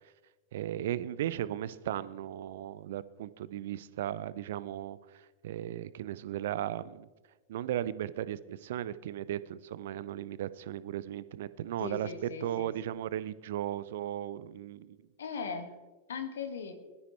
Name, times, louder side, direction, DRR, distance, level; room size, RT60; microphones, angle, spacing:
voice 1, 0.5-7.1 7.5-12.1 12.4-15.0, right 12 dB, 55° right, 17 dB, 0.6 m, -36 dB
voice 2, 11.8-12.7 15.2-15.7 16.1-16.7, left 6 dB, 65° left, 6 dB, 1.9 m, -38 dB
21.0 x 13.0 x 3.3 m, 1.2 s
figure-of-eight pair, 90°, 0 cm